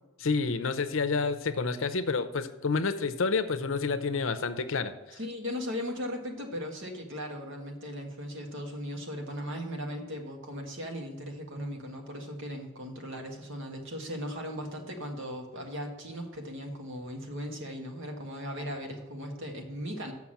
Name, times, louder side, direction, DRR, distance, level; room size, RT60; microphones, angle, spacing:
voice 1, 0.2-5.2, left 4 dB, 65° left, 11 dB, 0.6 m, -29 dB
voice 2, 5.2-20.1, equal, 60° right, 3 dB, 1.7 m, -38 dB
7.1 x 6.0 x 7.4 m, 1.1 s
head